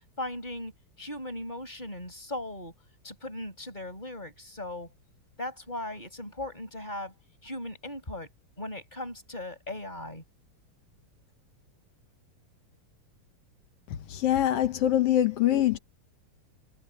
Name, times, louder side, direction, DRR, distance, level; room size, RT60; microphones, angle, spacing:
voice 1, 0.2-0.7 1.0-2.7 3.0-4.9 5.4-7.1 7.4-8.3 8.6-10.2, left 1 dB, 10° left, 6.2 m, -38 dB
voice 2, 14.1-15.8, left 12 dB, 80° left, 1.3 m, -24 dB
omnidirectional pair, 4.3 m